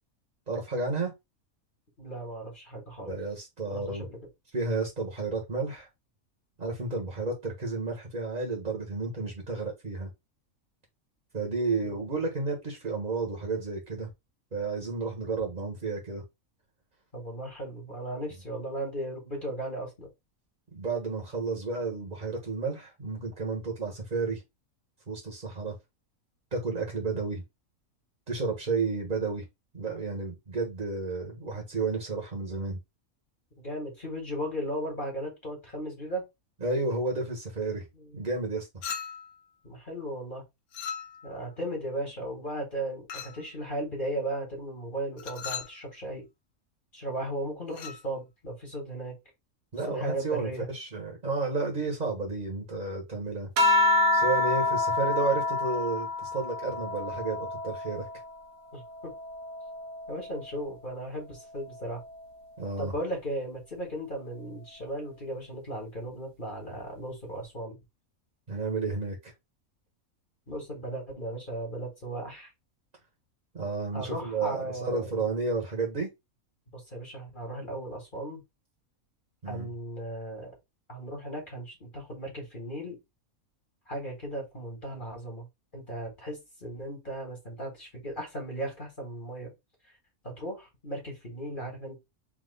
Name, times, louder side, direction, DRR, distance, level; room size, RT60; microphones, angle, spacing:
voice 1, 0.5-1.1 3.0-4.1 4.5-5.9 6.6-10.1 11.3-14.1 14.5-16.2 20.7-24.4 25.1-25.8 26.5-27.4 28.3-29.5 29.7-32.8 36.6-37.8 38.1-38.7 49.7-53.5 54.1-58.0 62.6-62.9 68.5-69.3 73.5-76.1 79.4-79.7, right 3 dB, 35° right, 1.3 m, -32 dB
voice 2, 2.0-3.2 3.7-4.2 11.8-12.0 17.1-20.1 31.4-31.6 33.6-36.2 37.9-38.2 39.6-40.4 41.2-46.3 46.9-49.1 49.9-50.7 58.7-59.1 60.1-62.0 62.8-67.8 70.5-72.5 73.9-75.1 76.7-78.4 79.5-80.5 80.9-82.9 83.9-85.5 85.7-89.5 90.2-92.0, right 1 dB, 35° left, 1.8 m, -36 dB
Chink clink, 38.8-39.4 40.7-41.4 43.1-43.5 45.2-45.8 47.7-48.0, left 7 dB, 85° left, 1.3 m, -38 dB
sound 1, 53.6-58.4 58.8-60.6 61.7-62.3, left 2 dB, 85° right, 1.3 m, -28 dB
3.7 x 2.9 x 3.9 m
omnidirectional pair, 1.5 m